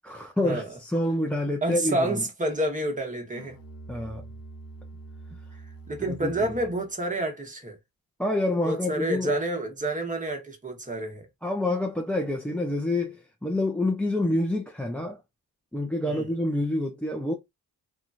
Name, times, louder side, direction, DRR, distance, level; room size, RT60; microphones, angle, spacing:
voice 1, 0.0-2.2 3.9-4.2 6.1-6.3 8.2-9.3 11.4-15.2 15.7-17.3, left 1 dB, 5° left, 0.5 m, -27 dB
voice 2, 1.6-3.6 5.9-7.8 8.6-11.3 16.1-16.3, right 1 dB, 20° right, 1.2 m, -29 dB
Musical instrument, 3.3-6.8, right 3 dB, 60° left, 0.7 m, -45 dB
2.9 x 2.4 x 2.6 m
cardioid pair, 60°, 40 cm